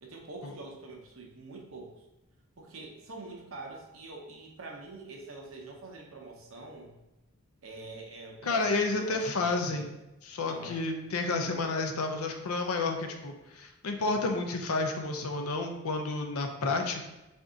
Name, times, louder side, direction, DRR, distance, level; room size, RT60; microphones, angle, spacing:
voice 1, 0.0-2.0 2.6-7.0 7.6-9.9 10.5-10.8 11.4-11.6, right 2 dB, 65° right, 0 dB, 0.8 m, -45 dB
voice 2, 8.4-9.9 10.2-17.1, left 3 dB, 80° left, 4 dB, 0.5 m, -31 dB
3.5 x 2.6 x 3.7 m, 0.98 s
head